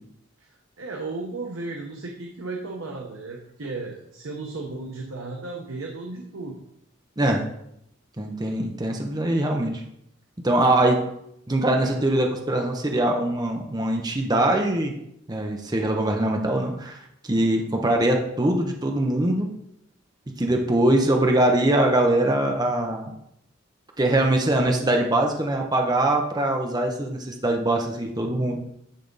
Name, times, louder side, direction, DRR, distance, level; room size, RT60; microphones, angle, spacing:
voice 1, 0.8-6.6 24.4-25.1, right 3 dB, 75° right, 1 dB, 0.8 m, -35 dB
voice 2, 8.2-9.8 10.4-11.1 11.5-14.9 15.3-17.0 17.3-19.5 20.4-23.1 24.0-28.6, right 1 dB, 20° right, 2 dB, 0.7 m, -22 dB
10.5 x 3.4 x 3.9 m, 0.77 s
head